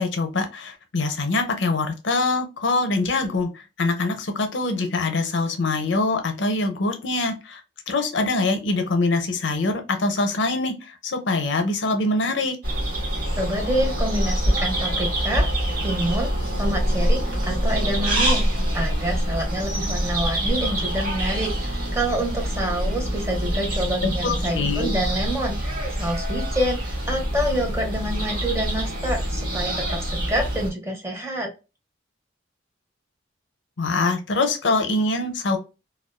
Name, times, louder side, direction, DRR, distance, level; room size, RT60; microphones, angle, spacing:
voice 1, 0.0-7.6 7.9-12.6 24.2-24.9 33.8-35.6, left 3 dB, 70° left, 0.6 m, -24 dB
sound 1, 12.6-30.7, right 1 dB, 45° right, 1.2 m, -25 dB
voice 2, 13.4-15.5 15.8-16.3 16.6-31.5, right 1 dB, 15° right, 0.6 m, -27 dB
2.5 x 2.2 x 2.2 m
head